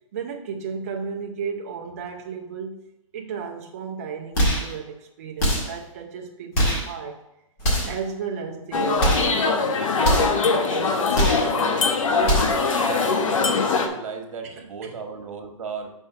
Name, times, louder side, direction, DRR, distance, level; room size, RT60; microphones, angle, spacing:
voice 1, 0.1-2.9 3.1-7.2 7.8-9.6 10.1-11.7 14.4-15.0, right 6 dB, 25° right, 1 dB, 0.4 m, -34 dB
sound 1, 4.3-4.7 5.4-5.8 6.5-6.9 7.6-8.0 9.0-9.4 10.0-10.4 11.1-11.5 12.2-12.7, equal, 30° left, 1.9 m, -22 dB
sound 2, 8.7-13.9, left 4 dB, 70° left, 0.9 m, -22 dB
voice 2, 12.8-15.9, right 5 dB, 75° right, 5 dB, 1.2 m, -36 dB
5.4 x 4.3 x 5.6 m, 0.90 s
hypercardioid pair, 170°, 17 cm